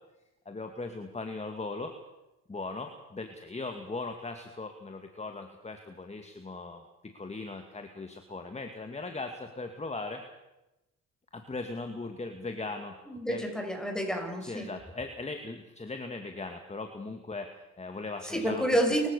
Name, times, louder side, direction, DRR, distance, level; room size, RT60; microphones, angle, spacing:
voice 1, 0.5-1.9 2.5-10.2 11.3-13.0 13.3-13.4 14.4-18.7, left 3 dB, 20° left, 6 dB, 2.2 m, -39 dB
voice 2, 13.1-14.7 18.2-19.1, equal, ahead, 3 dB, 6.9 m, -29 dB
29.5 x 16.0 x 6.8 m, 0.98 s
cardioid pair, 90°, 30 cm